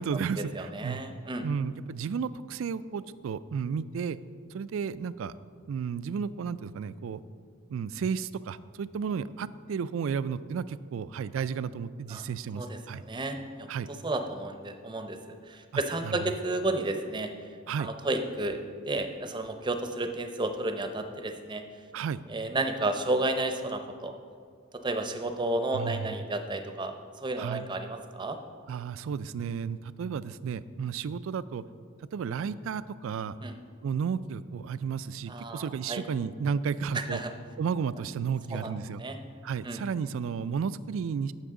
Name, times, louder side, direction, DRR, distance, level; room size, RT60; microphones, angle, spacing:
voice 1, 0.0-1.0 1.4-4.2 4.5-5.3 5.7-7.2 7.7-13.0 13.7-13.9 15.7-16.2 17.7-17.9 21.9-22.2 25.7-26.2 27.4-27.7 28.7-31.6 32.1-33.4 33.8-37.2 37.6-39.0 39.4-41.3, right 6 dB, 65° right, 16 dB, 0.3 m, -33 dB
voice 2, 0.5-1.4 12.1-12.2 12.6-12.8 13.0-13.7 14.0-15.2 15.5-17.3 17.8-21.6 22.3-24.2 24.8-28.4 33.4-33.5 35.3-36.0 37.1-37.3 38.5-38.7 39.0-39.2 39.6-39.8, right 2 dB, 20° right, 7 dB, 0.6 m, -32 dB
14.5 x 6.1 x 3.7 m, 2.1 s
head